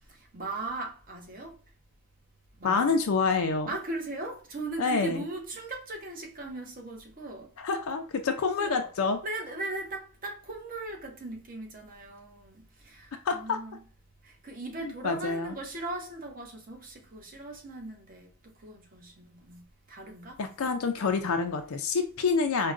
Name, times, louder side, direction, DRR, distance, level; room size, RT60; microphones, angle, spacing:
voice 1, 0.1-1.6 2.6-2.9 3.7-7.5 8.6-8.9 9.2-13.8 14.2-20.4 21.0-21.1, right 2 dB, 40° right, 0.9 m, -38 dB
voice 2, 2.6-3.7 4.8-5.2 7.6-9.2 13.3-13.6 14.8-15.6 20.4-22.7, left 4 dB, 70° left, 0.4 m, -27 dB
4.7 x 2.2 x 2.4 m
head